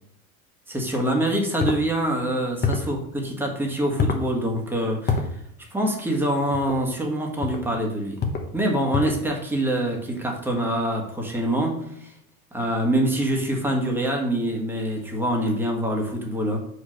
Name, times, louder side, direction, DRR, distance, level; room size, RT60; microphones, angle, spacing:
voice 1, 0.7-5.4 5.7-8.2 8.5-12.1 12.5-16.6, right 1 dB, 5° right, 0 dB, 1.6 m, -25 dB
sound 1, 1.6-1.8 2.6-2.9 4.0-4.3 5.1-5.3 6.5-6.8 7.4-7.7 8.2-8.5 8.9-9.3, left 4 dB, 25° left, 1.0 m, -25 dB
5.1 x 4.9 x 6.3 m, 0.73 s
supercardioid pair, 120°, 42 cm